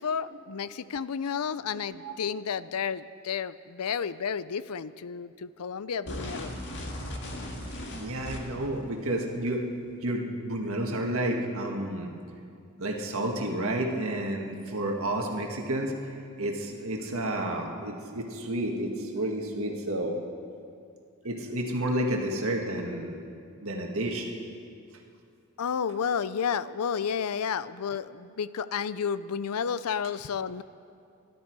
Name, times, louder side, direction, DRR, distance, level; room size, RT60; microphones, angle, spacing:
voice 1, 0.0-6.6 25.6-30.6, left 7 dB, 80° left, 16 dB, 0.5 m, -31 dB
sound 1, 6.1-8.7, left 1 dB, 55° left, 2.0 m, -37 dB
voice 2, 7.6-9.6 10.0-12.1 12.8-20.2 21.2-23.2 23.6-24.3, right 1 dB, 65° right, 1 dB, 1.9 m, -31 dB
24.5 x 12.5 x 4.7 m, 2.4 s
head